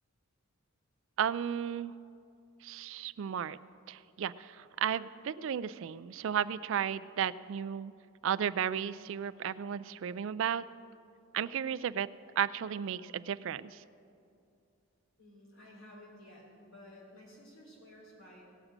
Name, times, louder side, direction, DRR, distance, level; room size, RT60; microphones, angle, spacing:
voice 1, 1.2-1.9 2.6-3.6 3.9-7.9 8.2-10.6 11.3-12.1 12.4-13.8, right 8 dB, 60° right, 15 dB, 0.3 m, -34 dB
voice 2, 15.2-18.4, left 1 dB, 60° left, -4 dB, 3.7 m, -54 dB
17.5 x 6.5 x 6.0 m, 2.5 s
head